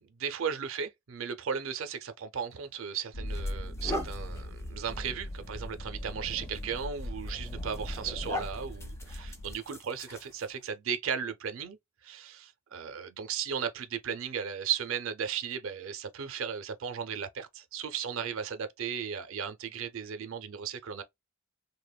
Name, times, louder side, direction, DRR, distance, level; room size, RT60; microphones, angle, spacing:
voice 1, 0.0-21.0, right 7 dB, 65° right, 0.5 m, -36 dB
sound 1, 2.5-2.7 3.3-10.7, left 1 dB, 15° left, 0.4 m, -42 dB
sound 2, 3.1-9.5, left 1 dB, 80° left, 0.7 m, -39 dB
2.8 x 2.1 x 2.2 m
head